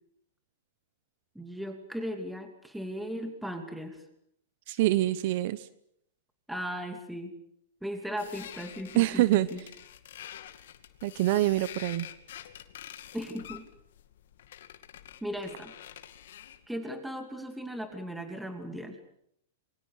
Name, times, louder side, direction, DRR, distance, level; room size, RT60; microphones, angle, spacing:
voice 1, 1.3-4.0 6.5-7.3 7.8-9.6 13.1-13.7 15.2-15.7 16.7-19.0, equal, 5° right, 5 dB, 2.7 m, -37 dB
voice 2, 4.7-5.7 9.0-9.5 11.0-12.1, right 16 dB, 55° right, 16 dB, 0.9 m, -25 dB
sound 1, 8.2-16.6, left 11 dB, 70° left, 2.4 m, -47 dB
27.0 x 23.0 x 6.7 m, 0.71 s
hypercardioid pair, 140°, 0 cm